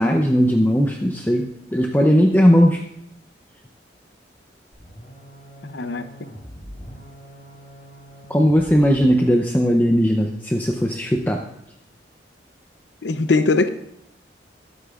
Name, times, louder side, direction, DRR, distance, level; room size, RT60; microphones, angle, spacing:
voice 1, 0.0-2.8 8.3-11.4, equal, 10° left, 2 dB, 0.6 m, -18 dB
sound 1, 4.7-9.6, equal, 40° left, 4.0 m, -43 dB
voice 2, 5.7-6.1 13.0-13.7, left 3 dB, 80° left, 10 dB, 0.7 m, -20 dB
21.5 x 8.3 x 2.5 m, 0.77 s
head